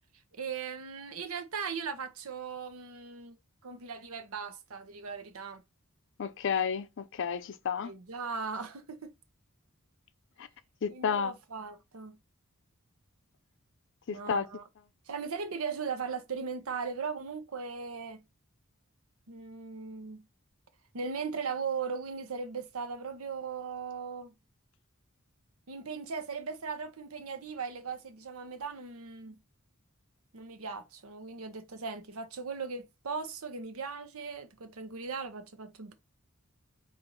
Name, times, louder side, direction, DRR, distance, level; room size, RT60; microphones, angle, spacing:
voice 1, 0.3-3.4 3.6-5.6 7.8-9.1 10.9-12.2 14.1-14.6 15.1-18.2 19.3-20.2 20.9-24.3 25.7-29.4 30.3-35.9, right 5 dB, 75° right, 0.8 m, -38 dB
voice 2, 6.2-7.9 10.8-11.3 14.1-14.5, left 6 dB, 60° left, 0.5 m, -31 dB
5.1 x 2.6 x 3.0 m
head